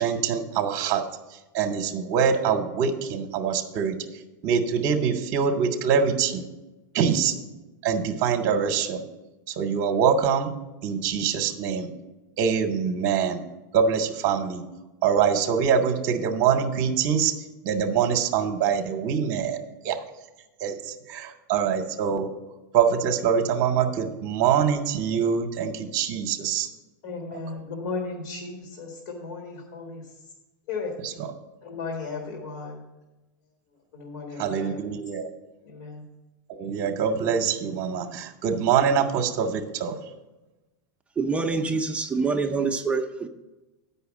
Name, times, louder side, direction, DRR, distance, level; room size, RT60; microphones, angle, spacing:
voice 1, 0.0-6.5 6.9-7.3 7.8-9.0 9.5-10.5 10.8-11.9 12.4-13.4 13.7-14.6 15.0-17.3 17.6-20.0 20.6-22.3 22.7-26.7 31.0-31.3 34.4-35.3 36.5-40.0, right 7 dB, 40° right, 5 dB, 0.8 m, -24 dB
voice 2, 27.0-30.0 30.7-30.9 31.6-32.8 33.9-34.8 35.6-36.0, left 4 dB, 70° left, 1 dB, 1.6 m, -35 dB
voice 3, 41.2-43.3, right 4 dB, 10° right, 4 dB, 0.5 m, -26 dB
8.1 x 5.5 x 7.1 m, 1.1 s
supercardioid pair, 145°, 10 cm